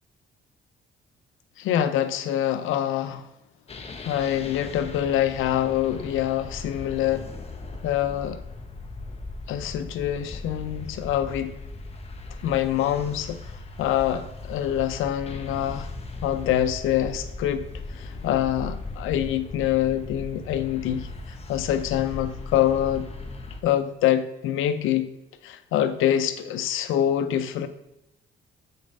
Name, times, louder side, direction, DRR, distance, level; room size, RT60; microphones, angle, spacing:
voice 1, 1.6-3.2 4.0-7.3 7.8-8.4 9.5-11.5 12.4-13.4 13.8-15.9 16.2-17.6 18.0-21.1 21.5-23.1 23.6-25.1 25.4-27.7, left 11 dB, 90° left, 0.6 m, -25 dB
sound 1, 3.7-23.6, left 3 dB, 30° left, 1.0 m, -38 dB
6.8 x 4.2 x 5.3 m
cardioid pair, 90°, 20 cm